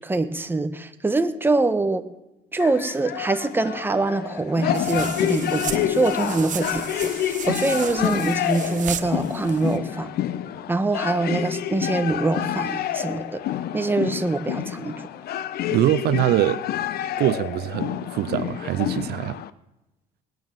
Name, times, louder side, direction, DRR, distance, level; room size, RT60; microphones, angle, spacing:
voice 1, 0.0-2.1 2.5-10.1 10.7-13.4 13.7-15.0, right 2 dB, 10° right, 9 dB, 1.2 m, -24 dB
sound 1, 2.6-19.5, left 11 dB, 70° left, 0.9 m, -28 dB
sound 2, 4.7-9.8, right 9 dB, 50° right, 1.3 m, -35 dB
voice 2, 15.7-16.6 17.2-19.4, right 14 dB, 70° right, 16 dB, 0.6 m, -23 dB
20.0 x 9.3 x 7.6 m, 0.95 s
cardioid pair, 110°, 17 cm